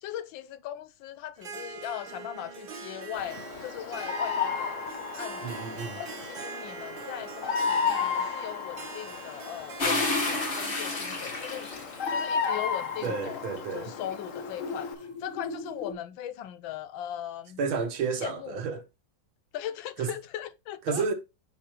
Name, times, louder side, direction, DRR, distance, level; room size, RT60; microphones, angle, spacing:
voice 1, 0.0-4.8 5.2-5.7 6.0-11.7 12.1-17.6 18.2-18.6 19.5-21.0, left 11 dB, 75° left, 1.3 m, -39 dB
Harp, 1.4-13.2, right 5 dB, 50° right, 0.6 m, -43 dB
Bird vocalization bird call bird song, 3.1-14.9, left 6 dB, 55° left, 0.9 m, -34 dB
voice 2, 5.4-6.0 13.0-13.9 17.6-18.8 20.0-20.1 20.9-21.1, right 5 dB, 80° right, 2.0 m, -31 dB
sound 1, 9.8-12.4 13.0-15.9, left 3 dB, 30° left, 1.3 m, -32 dB
8.9 x 5.4 x 3.0 m
omnidirectional pair, 2.2 m